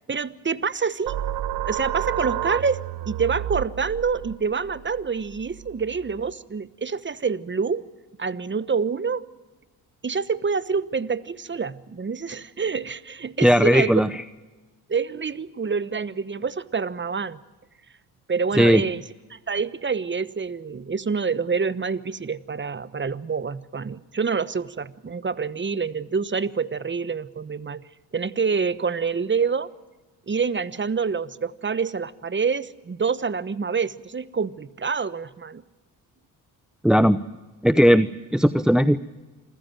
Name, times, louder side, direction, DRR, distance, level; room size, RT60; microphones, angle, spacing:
voice 1, 0.1-1.2 1.7-2.8 3.1-7.8 8.2-9.2 10.0-13.9 14.9-17.4 18.3-19.0 19.3-27.9 28.1-29.7 30.3-35.6, right 5 dB, 25° right, 17 dB, 1.1 m, -27 dB
sound 1, 1.1-6.3, right 12 dB, 60° right, 0.9 m, -31 dB
voice 2, 13.4-14.2 18.5-18.8 36.8-37.2 37.6-39.0, equal, ahead, 14 dB, 0.7 m, -17 dB
27.0 x 15.0 x 9.1 m, 1.2 s
supercardioid pair, 60°, 42 cm